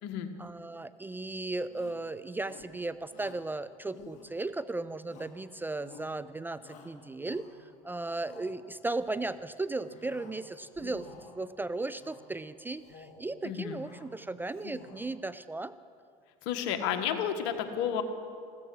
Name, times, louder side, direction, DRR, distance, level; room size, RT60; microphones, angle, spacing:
voice 1, 0.4-11.1 11.3-15.7, right 2 dB, 10° right, 14 dB, 0.4 m, -36 dB
Shout, 1.7-2.1 2.4-2.8 3.1-3.5 3.9-4.6 5.1-5.5 5.8-6.2 6.6-7.7 8.1-8.5 8.9-9.4 9.8-10.4 10.7-11.4 11.9-12.3 12.7-13.2 13.6-14.1 14.4-15.1, left 5 dB, 45° left, 2.3 m, -51 dB
voice 2, 13.4-13.8 16.4-18.0, left 9 dB, 70° left, 7 dB, 1.4 m, -31 dB
15.0 x 14.5 x 6.3 m, 2.2 s
supercardioid pair, 95°, 17 cm